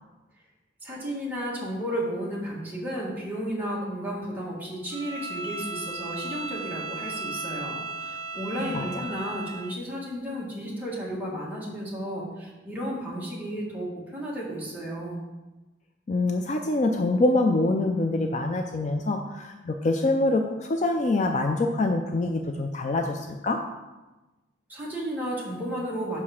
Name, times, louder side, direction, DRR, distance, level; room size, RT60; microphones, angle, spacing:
voice 1, 0.8-15.2 24.7-26.2, equal, 10° right, -5 dB, 1.5 m, -33 dB
Bowed string instrument, 4.9-9.8, right 3 dB, 80° right, 0.5 m, -36 dB
voice 2, 16.1-23.6, left 2 dB, 35° left, 4 dB, 0.4 m, -25 dB
6.0 x 4.8 x 5.7 m, 1.1 s
head